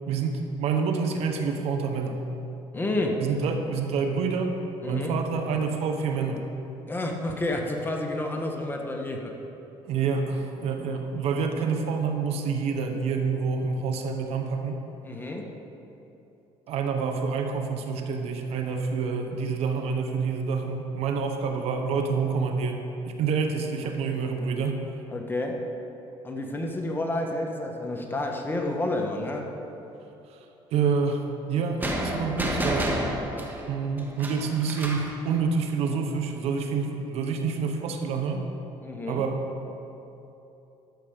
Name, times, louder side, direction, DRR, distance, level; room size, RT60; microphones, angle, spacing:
voice 1, 0.1-2.2 3.2-4.6 4.9-6.5 9.8-14.8 16.7-24.8 30.3-30.4 30.7-33.0 33.7-38.5 39.1-39.4, right 5 dB, 75° right, 4 dB, 1.1 m, -27 dB
voice 2, 2.7-3.2 4.8-5.2 6.9-9.3 15.0-15.5 25.1-25.6 26.2-29.5 38.8-39.3, left 1 dB, 20° left, 1 dB, 1.5 m, -30 dB
sound 1, 31.8-35.1, equal, 15° right, 1.7 m, -30 dB
13.0 x 7.1 x 5.3 m, 3.0 s
cardioid pair, 100°, 11 cm